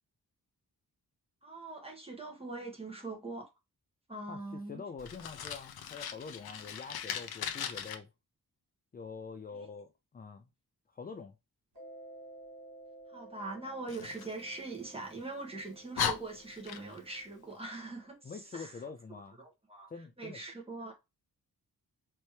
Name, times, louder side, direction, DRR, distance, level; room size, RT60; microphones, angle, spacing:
voice 1, 1.4-3.5 4.1-4.8 9.5-9.7 13.1-18.8 19.4-19.9 20.2-20.9, right 3 dB, 15° right, 1.5 m, -42 dB
voice 2, 4.3-8.1 8.9-10.5 10.9-11.4 18.2-19.4 19.9-20.4, left 5 dB, 25° left, 0.4 m, -45 dB
Fire, 5.0-7.9 13.9-15.1 15.6-15.7 15.9-17.2, left 8 dB, 85° left, 0.7 m, -38 dB
Mallet percussion, 11.7-18.1, right 2 dB, 70° right, 2.4 m, -54 dB
4.4 x 3.1 x 3.2 m
wide cardioid pair, 105°, 36 cm